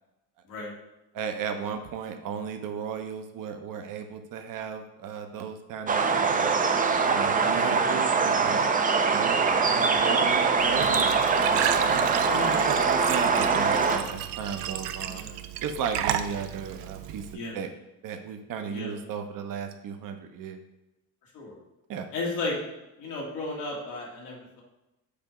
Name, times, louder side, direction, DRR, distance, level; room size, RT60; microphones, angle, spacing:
voice 1, 1.1-6.5 7.0-8.7 9.1-15.2 15.6-17.2 17.5-17.7 18.0-20.6 21.9-22.1, right 7 dB, 45° right, 6 dB, 0.8 m, -35 dB
sound 1, 5.9-14.0, right 5 dB, 20° right, 0.5 m, -23 dB
Glass / Trickle dribble / Fill (with liquid), 10.6-17.3, right 11 dB, 75° right, 0.6 m, -33 dB
voice 2, 18.6-19.0 21.3-21.6 22.1-22.6 23.0-24.6, left 2 dB, 80° left, -3 dB, 2.0 m, -34 dB
6.9 x 2.7 x 5.0 m, 0.95 s
hypercardioid pair, 75°, 46 cm